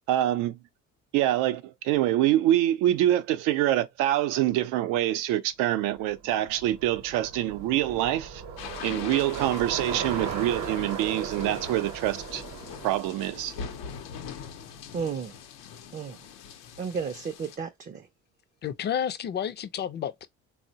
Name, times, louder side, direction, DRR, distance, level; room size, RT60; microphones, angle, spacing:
voice 1, 0.1-0.5 1.1-8.4 8.8-12.4 12.8-13.5, right 13 dB, 90° right, 0.5 m, -25 dB
Bicycle, 6.0-14.3, right 6 dB, 55° right, 0.8 m, -37 dB
sound 1, 8.6-17.6, left 7 dB, 85° left, 0.7 m, -42 dB
voice 2, 14.9-15.4 15.9-16.3 16.8-18.1, right 6 dB, 30° right, 0.4 m, -33 dB
voice 3, 18.6-20.3, left 9 dB, 35° left, 0.4 m, -30 dB
3.6 x 2.1 x 2.7 m
cardioid pair, 90°, 31 cm